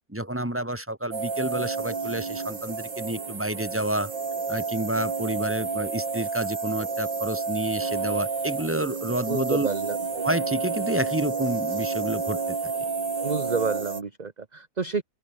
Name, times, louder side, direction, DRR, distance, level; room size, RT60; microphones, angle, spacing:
voice 1, 0.1-4.1 4.5-9.7 10.2-12.6, right 1 dB, 5° right, 2.8 m, -29 dB
sound 1, 1.1-14.0, right 4 dB, 70° right, 3.9 m, -30 dB
voice 2, 9.3-10.0 13.2-15.0, right 5 dB, 25° right, 1.1 m, -29 dB
open air
omnidirectional pair, 2.1 m